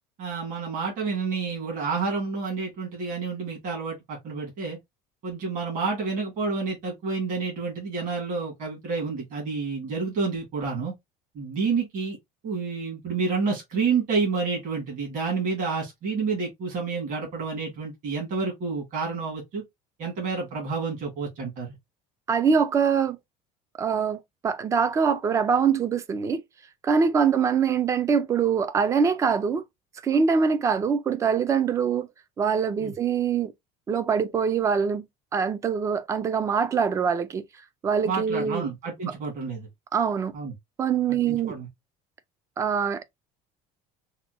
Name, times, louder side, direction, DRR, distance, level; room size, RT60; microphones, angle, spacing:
voice 1, 0.2-4.8 5.2-10.9 11.4-12.2 12.4-19.6 20.0-21.7 32.8-32.9 38.0-39.7 40.3-40.5 41.1-41.7, right 4 dB, 50° right, 1.9 m, -29 dB
voice 2, 22.3-23.2 23.8-26.4 26.8-29.6 30.0-32.1 32.4-33.5 33.9-35.1 35.3-37.4 37.8-38.7 39.0-39.1 39.9-40.3 40.8-41.5 42.6-43.0, right 6 dB, 20° right, 0.3 m, -23 dB
4.2 x 2.2 x 2.7 m
cardioid pair, 165°, 17 cm